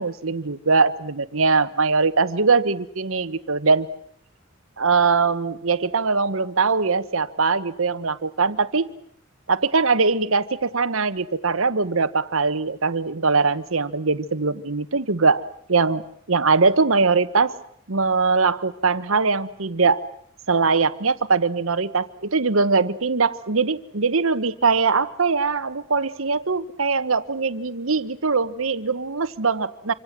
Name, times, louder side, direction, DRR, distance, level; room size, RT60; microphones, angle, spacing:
voice 1, 0.0-3.9 4.8-8.9 9.5-16.0 16.3-17.5 17.9-20.1 20.5-29.9, right 4 dB, 75° right, 12 dB, 1.2 m, -21 dB
26.5 x 26.0 x 7.5 m, 0.66 s
head